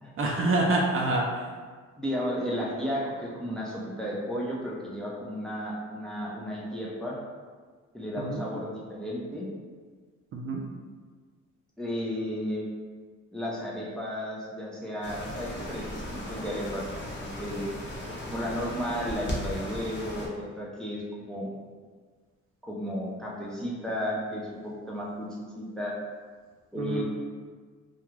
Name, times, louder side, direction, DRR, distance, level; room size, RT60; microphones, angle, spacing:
voice 1, 0.2-1.4 8.2-8.4 10.3-10.7 26.8-27.0, right 2 dB, 45° right, -1 dB, 0.5 m, -26 dB
voice 2, 2.0-7.2 7.9-9.5 11.8-12.7 13.3-16.9 17.2-17.7 18.3-21.5 22.6-25.3 25.6-25.9 26.7-27.0, equal, ahead, -4 dB, 0.5 m, -33 dB
sound 1, 15.0-20.3, left 1 dB, 40° left, 0.8 m, -37 dB
2.4 x 2.3 x 3.1 m, 1.5 s
cardioid pair, 90°, 30 cm